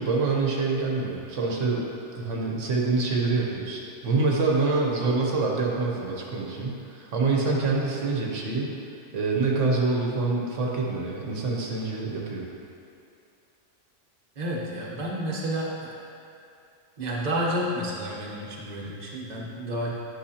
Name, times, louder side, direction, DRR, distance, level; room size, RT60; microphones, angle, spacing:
voice 1, 0.0-1.9 2.1-8.7 9.1-12.4, right 3 dB, 80° right, -2 dB, 1.3 m, -26 dB
voice 2, 14.4-16.0 17.0-19.9, equal, 40° right, -4 dB, 1.1 m, -30 dB
9.9 x 6.0 x 2.8 m, 2.6 s
omnidirectional pair, 1.3 m